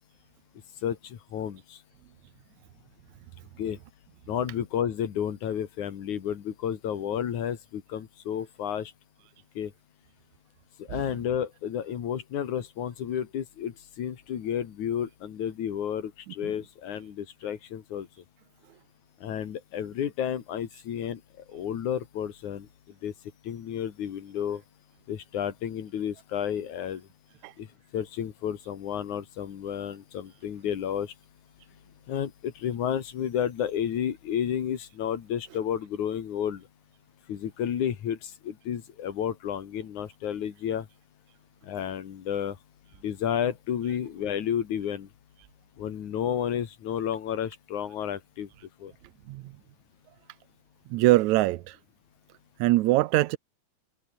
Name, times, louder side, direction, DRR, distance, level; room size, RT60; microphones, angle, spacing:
voice 1, 0.8-1.8 3.6-3.8 4.3-8.9 9.6-9.7 10.8-18.1 19.2-23.1 23.4-24.6 25.1-27.1 27.6-31.1 32.1-36.7 37.3-40.9 41.6-42.6 43.0-45.1 45.8-48.5 48.8-48.9, left 9 dB, 90° left, 3.5 m, -31 dB
voice 2, 50.9-51.8 52.6-53.4, right 18 dB, 90° right, 2.0 m, -23 dB
omnidirectional pair, 3.3 m